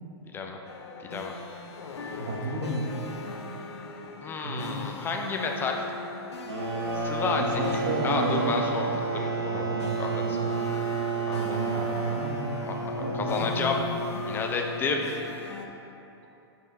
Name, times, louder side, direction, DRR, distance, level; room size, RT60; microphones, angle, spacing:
sound 1, 0.6-15.7, left 4 dB, 85° left, 0.7 m, -41 dB
voice 1, 1.0-1.3 4.2-5.9 6.9-10.4 11.3-11.6 12.7-13.8 14.3-15.1, left 4 dB, 15° left, 2 dB, 0.5 m, -31 dB
voice 2, 2.2-2.9 4.4-4.8 7.2-8.6 9.5-10.5 11.3-12.7 13.0-13.8, right 2 dB, 50° right, -1 dB, 1.3 m, -32 dB
sound 2, 6.5-14.9, right 3 dB, 85° right, 1.4 m, -31 dB
9.4 x 4.4 x 3.2 m, 2.8 s
hypercardioid pair, 135°, 14 cm